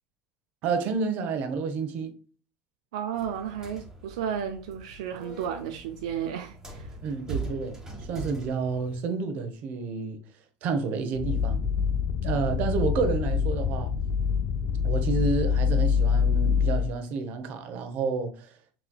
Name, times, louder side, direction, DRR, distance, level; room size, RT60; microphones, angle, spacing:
voice 1, 0.6-2.1 7.0-10.2 10.6-11.6 12.2-13.9 14.8-18.6, right 4 dB, 60° right, 0.9 m, -30 dB
voice 2, 2.9-7.0, right 8 dB, 90° right, 0.5 m, -33 dB
sound 1, 3.1-9.0, right 3 dB, 15° right, 1.6 m, -41 dB
sound 2, 11.1-16.9, left 6 dB, 65° left, 0.7 m, -25 dB
6.0 x 3.2 x 2.3 m
supercardioid pair, 105°, 3 cm